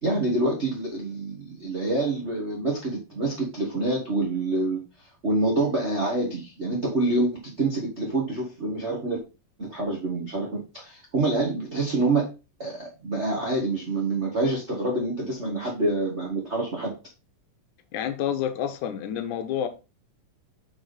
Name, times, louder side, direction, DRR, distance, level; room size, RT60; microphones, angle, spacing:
voice 1, 0.0-4.8 5.2-9.2 9.6-12.3 12.6-16.9, right 2 dB, 75° right, 0.6 m, -26 dB
voice 2, 17.9-19.7, left 9 dB, 70° left, 2.3 m, -28 dB
5.9 x 4.4 x 4.9 m
omnidirectional pair, 3.9 m